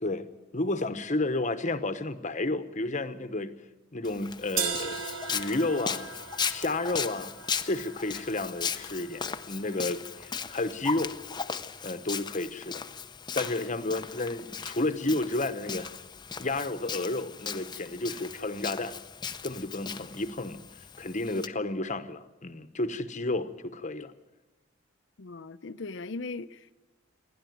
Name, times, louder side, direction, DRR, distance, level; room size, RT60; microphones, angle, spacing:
voice 1, 0.5-3.5 3.9-5.0 5.3-6.1 6.5-7.3 7.6-11.1 11.8-12.8 13.3-15.9 16.4-19.0 19.4-20.6 21.0-24.1, left 2 dB, 40° left, 1.1 m, -31 dB
Walk footsteps, 4.0-21.5, left 6 dB, 20° left, 0.6 m, -37 dB
sound 1, 4.6-10.5, right 6 dB, 80° right, 1.6 m, -38 dB
voice 2, 25.2-26.7, left 3 dB, 65° left, 0.7 m, -39 dB
28.5 x 11.5 x 9.3 m
head